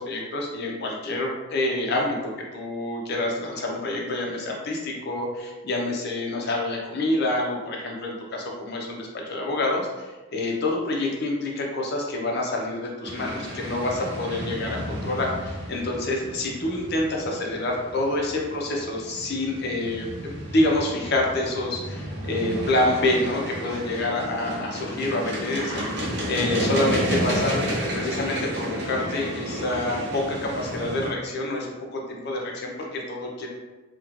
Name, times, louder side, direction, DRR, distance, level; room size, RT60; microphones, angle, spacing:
voice 1, 0.0-25.8 26.3-33.5, left 2 dB, 55° left, -1 dB, 0.5 m, -27 dB
sound 1, 13.0-31.1, equal, 55° right, 0.7 m, -32 dB
3.0 x 2.1 x 2.4 m, 1.2 s
head